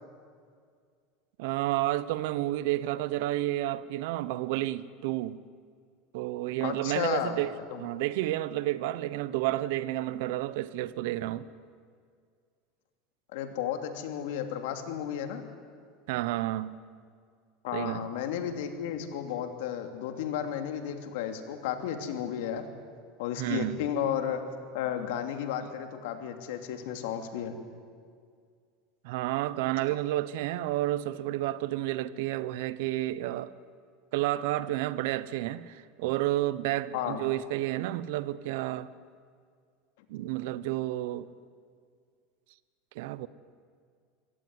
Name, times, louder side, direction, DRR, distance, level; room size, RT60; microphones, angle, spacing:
voice 1, 1.4-5.4 6.1-11.5 16.1-16.8 17.7-18.1 23.4-23.8 29.0-33.5 34.1-38.9 40.1-41.3 42.9-43.3, right 15 dB, 75° right, 1.0 m, -31 dB
voice 2, 6.6-7.4 7.7-7.8 13.3-15.4 17.6-22.7 23.2-24.4 24.7-27.6 36.9-37.2, left 9 dB, 75° left, 2.8 m, -33 dB
26.0 x 17.0 x 9.8 m
supercardioid pair, 125°, 0 cm